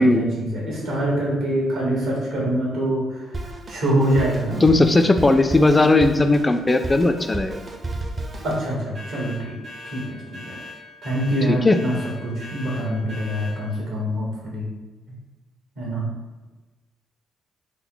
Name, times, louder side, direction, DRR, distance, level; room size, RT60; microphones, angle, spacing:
voice 1, 0.0-4.8 8.4-9.6 9.8-10.2 10.4-10.6 11.0-12.0 12.2-14.6 15.8-16.1, right 1 dB, 80° right, -3 dB, 1.4 m, -25 dB
Drum kit, 3.3-8.7, right 2 dB, 40° right, 0.6 m, -33 dB
voice 2, 4.6-7.6 11.5-11.8, left 2 dB, 25° left, 7 dB, 0.3 m, -17 dB
sound 1, 8.9-13.6, left 2 dB, 60° right, 1.4 m, -39 dB
3.7 x 2.1 x 3.9 m, 1.2 s
supercardioid pair, 60°, 0 cm